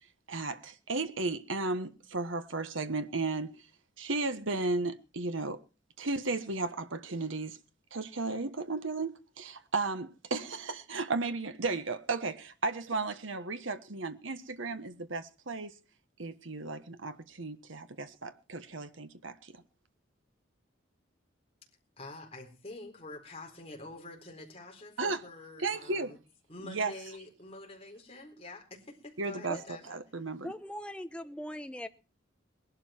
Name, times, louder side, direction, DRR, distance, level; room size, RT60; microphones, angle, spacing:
voice 1, 0.3-3.6 4.0-5.6 6.0-7.6 7.9-15.7 16.2-19.6 25.0-25.2 25.6-26.1 26.6-26.9 29.2-30.5, right 3 dB, 75° right, 1.3 m, -34 dB
voice 2, 22.0-26.2 26.5-30.0, left 2 dB, 30° left, 4.2 m, -47 dB
voice 3, 30.4-31.9, equal, 5° left, 0.9 m, -40 dB
21.0 x 12.0 x 4.5 m
head